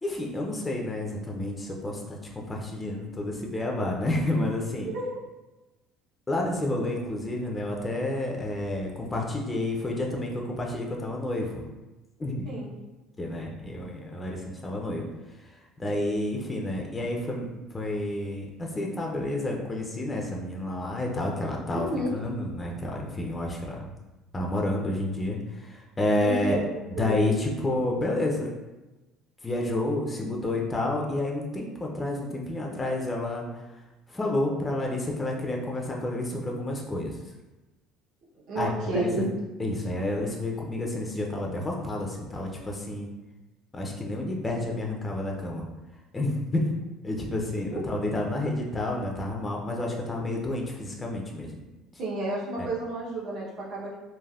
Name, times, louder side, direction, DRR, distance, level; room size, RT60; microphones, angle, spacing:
voice 1, 0.0-4.9 6.3-11.6 12.2-12.5 13.2-15.1 15.8-21.9 22.1-23.9 24.3-26.6 27.0-28.5 29.4-33.4 34.1-37.1 38.6-39.3 39.6-43.1 43.7-45.7 46.1-46.7 47.0-51.5, left 1 dB, 15° left, -1 dB, 0.4 m, -30 dB
voice 2, 4.8-5.2 12.4-12.7 21.7-22.1 26.2-26.6 26.9-27.2 38.5-39.2 47.7-47.8 52.0-53.9, right 1 dB, 60° right, -5 dB, 0.8 m, -31 dB
3.3 x 2.0 x 2.3 m, 1.1 s
cardioid pair, 115°, 0 cm